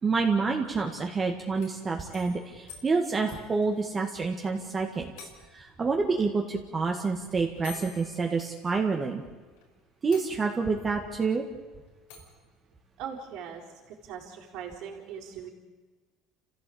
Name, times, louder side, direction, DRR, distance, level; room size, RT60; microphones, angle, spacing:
voice 1, 0.0-5.1 5.5-9.2 10.0-11.4, right 4 dB, 25° right, 2 dB, 1.7 m, -28 dB
sound 1, 1.5-4.5 4.8-4.9 5.2-5.7 6.8-6.9 7.6-9.1 9.6-9.7 10.1-10.8 12.1-12.4, left 7 dB, 90° left, 4.8 m, -49 dB
voice 2, 13.0-15.5, right 7 dB, 65° right, -5 dB, 4.1 m, -41 dB
29.0 x 15.5 x 8.6 m, 1.3 s
cardioid pair, 130°, 0 cm